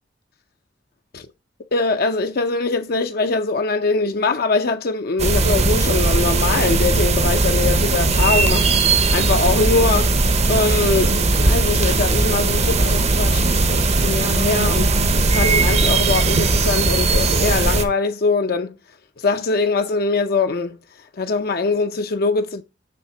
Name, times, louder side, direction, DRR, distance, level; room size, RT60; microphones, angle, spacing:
voice 1, 1.7-10.1 10.5-14.9 15.3-18.7 19.2-20.8 21.2-22.6, left 3 dB, 55° left, 0.6 m, -22 dB
sound 1, 5.2-17.9, right 3 dB, 35° right, 0.8 m, -18 dB
7.0 x 3.6 x 5.8 m
head